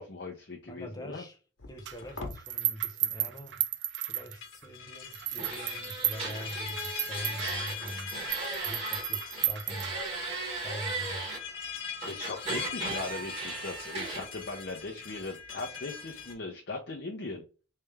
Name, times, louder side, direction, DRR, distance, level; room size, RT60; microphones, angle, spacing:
voice 1, 0.0-1.2 12.1-17.4, left 3 dB, 65° left, 0.7 m, -39 dB
voice 2, 0.7-1.4 1.7-3.7 4.0-8.2 8.6-10.0 10.5-11.3, equal, 20° left, 0.8 m, -43 dB
sound 1, 1.6-2.4 4.2-16.3, left 6 dB, 85° left, 1.2 m, -42 dB
sound 2, 1.9-4.7 5.1-10.3, right 12 dB, 65° right, 0.4 m, -34 dB
sound 3, 5.4-9.0 9.3-11.4 12.0-14.2, right 3 dB, 30° right, 2.1 m, -37 dB
3.4 x 3.3 x 3.3 m
head